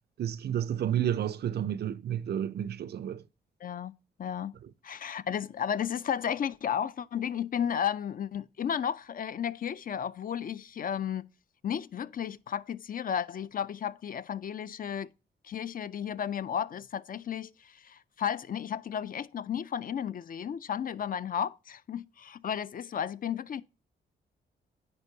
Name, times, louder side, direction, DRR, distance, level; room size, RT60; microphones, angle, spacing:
voice 1, 0.2-3.2, right 10 dB, 60° right, 0.4 m, -31 dB
voice 2, 3.6-3.9 4.2-4.6 4.8-11.2 11.6-15.1 15.4-23.6, left 8 dB, 50° left, 0.4 m, -33 dB
9.7 x 4.3 x 2.7 m
cardioid pair, 70°, 19 cm